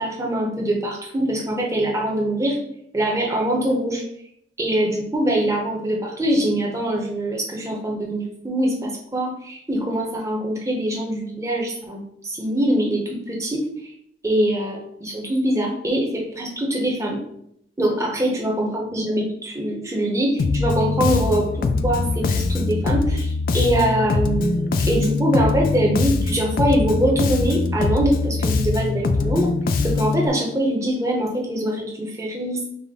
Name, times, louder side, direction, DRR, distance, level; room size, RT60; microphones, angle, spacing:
voice 1, 0.0-2.6 2.9-4.0 4.6-13.7 14.2-17.2 17.8-29.5 29.8-32.7, right 1 dB, 15° right, -2 dB, 0.8 m, -23 dB
Bass guitar, 20.4-30.3, left 3 dB, 50° left, 0.3 m, -22 dB
4.9 x 2.1 x 3.7 m, 0.72 s
head